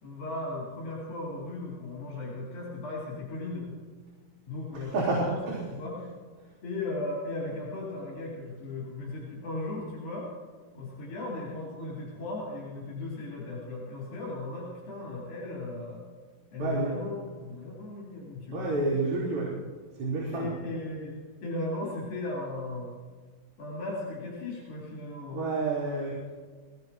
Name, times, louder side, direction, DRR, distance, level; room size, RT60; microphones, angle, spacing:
voice 1, 0.0-3.8 4.5-5.4 5.7-6.1 6.6-10.3 10.7-16.0 16.5-18.7 20.3-23.0 23.6-25.5, left 2 dB, 85° left, -5 dB, 5.4 m, -36 dB
voice 2, 4.7-5.5 16.6-16.9 18.5-19.5 20.0-20.5 25.3-26.2, right 3 dB, 65° right, -9 dB, 5.4 m, -29 dB
21.5 x 18.5 x 3.1 m, 1.5 s
omnidirectional pair, 4.0 m